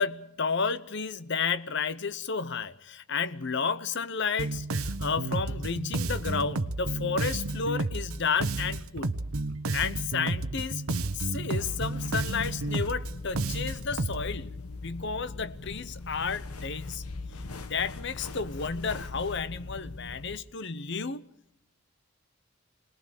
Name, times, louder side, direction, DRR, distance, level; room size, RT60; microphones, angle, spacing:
voice 1, 0.0-9.2 9.7-10.8 11.1-17.0 17.7-21.3, left 5 dB, 50° left, 0.8 m, -32 dB
Bass guitar, 4.4-14.3, right 2 dB, 75° right, 1.0 m, -31 dB
sound 1, 11.5-20.4, left 3 dB, 85° left, 1.4 m, -40 dB
26.0 x 20.0 x 6.5 m
head